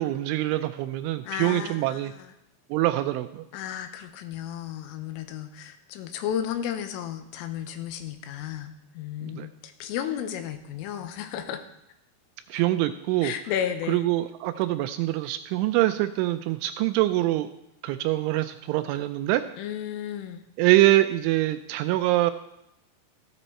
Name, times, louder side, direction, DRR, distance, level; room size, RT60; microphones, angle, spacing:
voice 1, 0.0-2.1 2.7-3.4 9.3-9.5 12.5-13.3 13.9-17.5 17.8-19.4 20.6-22.3, right 16 dB, 85° right, 10 dB, 2.8 m, -24 dB
voice 2, 1.2-2.3 3.5-11.6 12.5-12.6 13.2-14.1 19.6-20.4, left 9 dB, 90° left, 8 dB, 3.6 m, -33 dB
15.0 x 9.9 x 4.3 m, 0.82 s
omnidirectional pair, 5.8 m